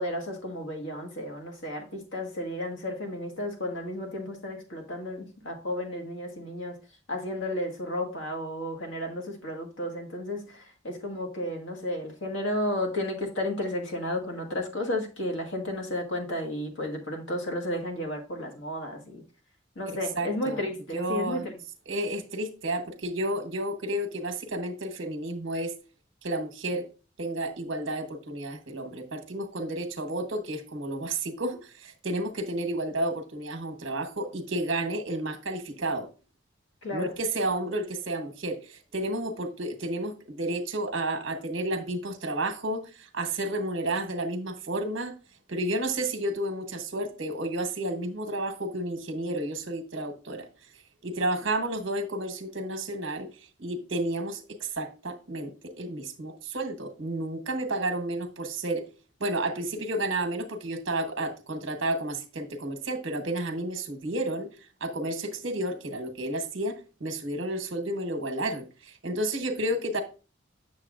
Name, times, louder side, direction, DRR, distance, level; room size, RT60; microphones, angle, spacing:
voice 1, 0.0-6.8 7.1-19.2 19.7-21.5 36.8-37.1, left 1 dB, 85° left, 1.6 m, -33 dB
voice 2, 20.2-20.6 20.9-21.5 21.9-25.7 26.2-26.8 27.2-36.1 36.9-42.8 43.1-45.1 45.5-50.5 51.0-53.3 53.6-55.5 55.8-58.8 59.2-64.5 64.8-66.7 67.0-70.0, right 1 dB, 70° right, 1.0 m, -31 dB
7.7 x 6.6 x 2.5 m
head